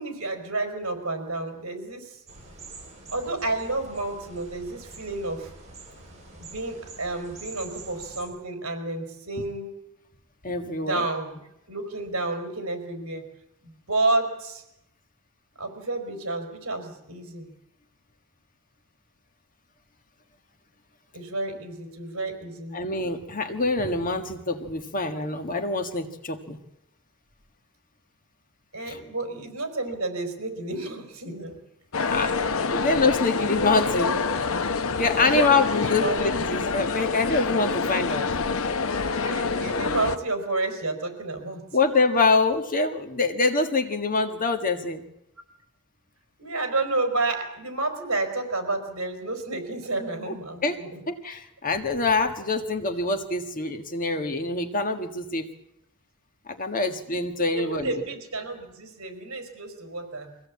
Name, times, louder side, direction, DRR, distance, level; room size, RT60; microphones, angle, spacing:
voice 1, 0.0-2.2 3.1-5.5 6.4-9.7 10.7-11.4 11.7-13.2 13.6-14.6 15.6-17.5 21.1-22.8 28.7-31.6 32.2-32.3 35.3-36.7 39.2-41.6 46.4-51.0 57.5-60.3, right 2 dB, 65° right, 5 dB, 4.7 m, -30 dB
sound 1, 2.3-8.3, right 3 dB, 30° right, 7.4 m, -45 dB
voice 2, 10.4-11.0 22.7-26.6 28.9-29.0 32.0-32.3 32.7-34.2 35.0-38.2 41.7-45.0 50.3-50.4 50.6-50.8 51.1-55.5 56.5-58.0, left 3 dB, 40° left, 6 dB, 1.7 m, -25 dB
sound 2, 31.9-40.2, left 4 dB, 65° left, 0.9 m, -26 dB
23.0 x 16.5 x 8.5 m, 0.85 s
head